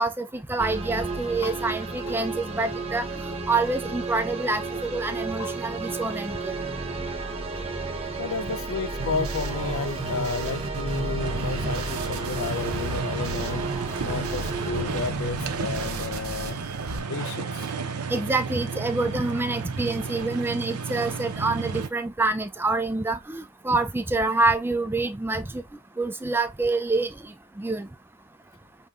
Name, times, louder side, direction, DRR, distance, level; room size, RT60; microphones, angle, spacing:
voice 1, 0.0-3.0 3.5-6.5 18.1-25.6 26.0-27.1 27.6-27.9, right 3 dB, 10° right, 0.4 m, -26 dB
sound 1, 0.6-14.9, right 3 dB, 25° right, 0.8 m, -33 dB
voice 2, 8.2-13.7 14.0-16.6 17.1-17.7, left 5 dB, 65° left, 0.5 m, -32 dB
sound 2, 9.0-17.0, right 3 dB, 65° right, 1.0 m, -34 dB
sound 3, 11.2-21.9, right 5 dB, 90° right, 0.8 m, -33 dB
5.4 x 3.1 x 2.4 m
head